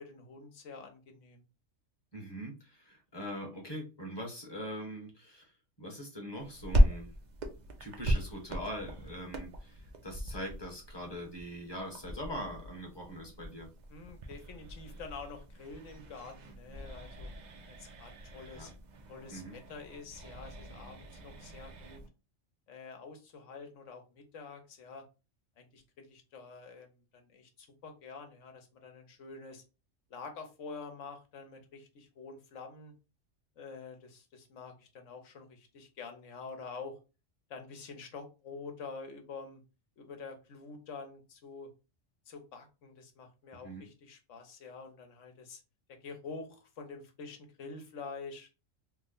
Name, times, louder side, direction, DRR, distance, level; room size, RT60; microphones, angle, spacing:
voice 1, 0.0-1.4 13.9-17.3 17.7-18.7 19.1-22.0 22.7-25.0 25.6-29.6 30.1-32.9 33.6-36.9 37.5-39.6 40.0-41.7 42.3-45.6 46.0-48.5, left 4 dB, 70° left, 5 dB, 1.1 m, -47 dB
voice 2, 2.1-5.5 5.8-7.1 7.8-13.7 18.4-18.7 19.3-19.6 43.6-43.8, equal, 20° left, 0 dB, 0.9 m, -42 dB
sound 1, 6.4-22.1, equal, 55° right, 0.5 m, -36 dB
3.2 x 2.1 x 3.7 m, 0.30 s
omnidirectional pair, 1.3 m